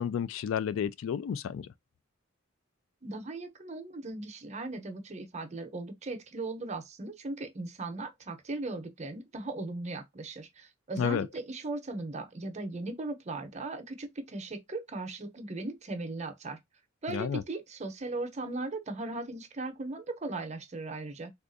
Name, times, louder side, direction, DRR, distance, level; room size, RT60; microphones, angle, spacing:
voice 1, 0.0-1.7 11.0-11.3 17.1-17.4, left 8 dB, 85° left, 0.3 m, -31 dB
voice 2, 3.0-16.6 17.0-21.3, right 2 dB, 35° right, 0.7 m, -38 dB
3.6 x 2.4 x 2.5 m
head